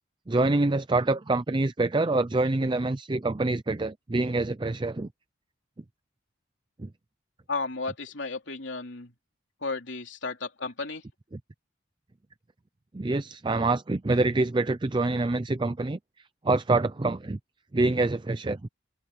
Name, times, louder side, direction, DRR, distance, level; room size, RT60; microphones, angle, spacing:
voice 1, 0.3-5.1 6.8-6.9 12.9-16.0 16.4-17.4 17.7-18.7, right 2 dB, 25° right, 0.5 m, -26 dB
voice 2, 7.5-9.1 9.6-11.0, left 3 dB, 65° left, 3.3 m, -33 dB
head